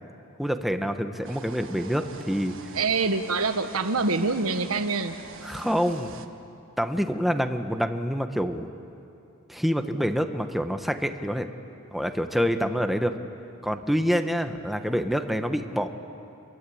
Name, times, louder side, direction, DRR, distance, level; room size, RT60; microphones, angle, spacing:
voice 1, 0.4-2.8 5.4-6.2 6.8-8.7 9.5-11.5 11.9-13.1 13.6-15.9, equal, ahead, 6 dB, 1.1 m, -27 dB
sound 1, 1.2-6.3, right 5 dB, 65° right, 1.4 m, -45 dB
voice 2, 2.7-5.2, right 4 dB, 80° right, 9 dB, 1.4 m, -25 dB
28.0 x 23.0 x 8.6 m, 2.8 s
head